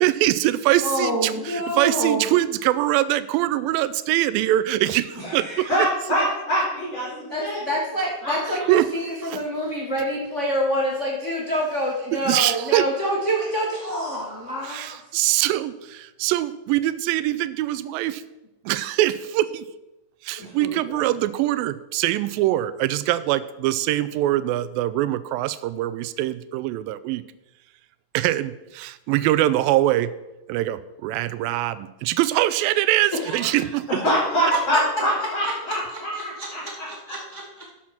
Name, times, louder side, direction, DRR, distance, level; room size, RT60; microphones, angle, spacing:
voice 1, 0.0-5.7 8.5-8.9 9.2-9.4 12.1-12.9 14.6-18.2 18.7-19.7 20.2-27.2 28.1-30.1 30.5-33.9, right 15 dB, 85° right, 15 dB, 2.3 m, -23 dB
voice 2, 0.8-2.2 7.3-15.0 33.3-33.5 36.1-36.5 37.1-37.4, equal, 85° left, -3 dB, 0.6 m, -26 dB
voice 3, 5.2-7.6 8.2-8.3 20.4-21.0 33.9-36.9, equal, 35° left, -6 dB, 5.2 m, -25 dB
13.0 x 6.1 x 5.8 m, 0.98 s
omnidirectional pair, 4.2 m